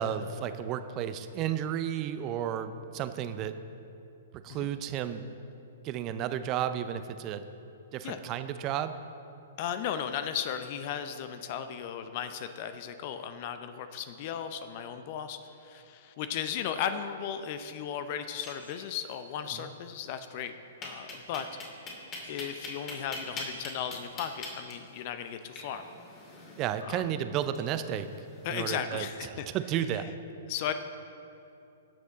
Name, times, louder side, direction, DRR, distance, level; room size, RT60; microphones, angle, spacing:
voice 1, 0.0-3.6 4.3-5.2 5.8-7.5 7.9-9.0 19.5-19.7 26.6-28.1 28.5-30.1, right 10 dB, 35° right, 11 dB, 0.6 m, -33 dB
voice 2, 9.6-20.5 20.8-21.5 22.2-25.8 26.8-27.0 28.4-29.5 29.9-30.1 30.5-30.7, left 8 dB, 45° left, 10 dB, 0.6 m, -36 dB
sound 1, 18.4-19.2 19.5-19.6 19.8-19.9 20.8-28.7, left 3 dB, 30° left, 2.6 m, -44 dB
18.5 x 6.4 x 4.0 m, 2.8 s
hypercardioid pair, 120°, 0 cm